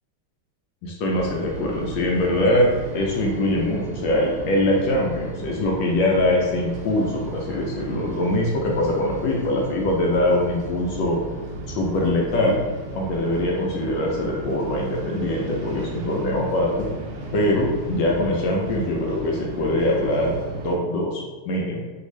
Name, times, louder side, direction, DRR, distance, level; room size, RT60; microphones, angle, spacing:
voice 1, 0.8-2.7 2.9-11.2 11.7-12.6 12.9-16.9 17.3-20.3 20.6-21.8, left 1 dB, 75° left, -2 dB, 1.1 m, -23 dB
sound 1, 1.1-20.8, right 2 dB, 90° right, 0.9 m, -34 dB
3.4 x 2.4 x 3.1 m, 1.3 s
omnidirectional pair, 2.4 m